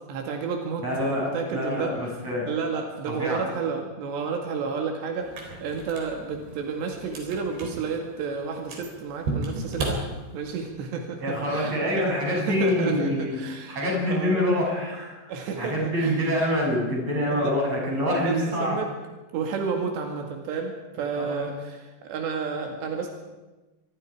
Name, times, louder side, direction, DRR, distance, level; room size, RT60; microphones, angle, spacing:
voice 1, 0.1-2.2 2.5-10.0 10.3-14.5 15.3-16.3 17.3-17.5 18.1-18.9 19.3-23.1, right 5 dB, 90° right, 2 dB, 4.4 m, -31 dB
voice 2, 0.8-2.5 3.1-3.4 11.2-13.4 13.7-18.8 21.2-21.5, left 1 dB, 35° right, -2 dB, 8.8 m, -26 dB
sound 1, 5.2-10.7, right 2 dB, 70° right, 6.1 m, -35 dB
25.0 x 22.5 x 4.9 m, 1.1 s
omnidirectional pair, 4.8 m